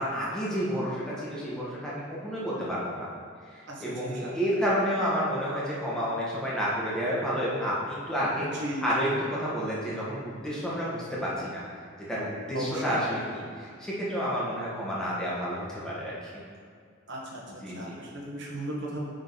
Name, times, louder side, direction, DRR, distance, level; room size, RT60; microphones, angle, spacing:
voice 1, 0.0-3.1 3.5-8.5 8.8-11.6 12.1-16.1 17.5-18.0, equal, 5° left, -8 dB, 1.6 m, -30 dB
voice 2, 8.4-8.8 12.5-12.8 17.1-17.4 17.7-19.0, right 1 dB, 55° right, -3 dB, 1.4 m, -36 dB
10.0 x 3.9 x 4.1 m, 2.1 s
head